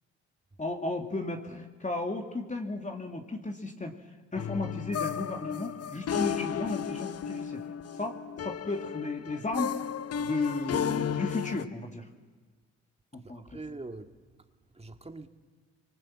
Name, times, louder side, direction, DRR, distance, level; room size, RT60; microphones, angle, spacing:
voice 1, 0.6-3.9 4.3-7.6 8.0-9.8 10.2-12.0 13.1-13.4, left 2 dB, 20° left, 2.4 m, -34 dB
sound 1, 4.3-11.6, left 8 dB, 45° left, 0.9 m, -33 dB
voice 2, 13.2-15.3, right 2 dB, 20° right, 2.0 m, -44 dB
24.5 x 24.0 x 7.5 m
hypercardioid pair, 50°, 33 cm